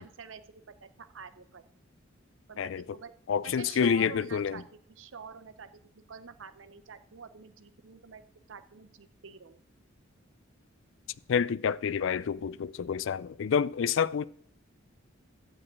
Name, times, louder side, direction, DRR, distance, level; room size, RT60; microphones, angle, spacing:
voice 1, 0.0-1.6 2.5-3.1 3.4-8.2 8.5-9.6, right 5 dB, 70° right, 0.7 m, -47 dB
voice 2, 3.3-4.6 11.3-14.3, left 7 dB, 70° left, 0.4 m, -28 dB
12.0 x 4.9 x 8.6 m
head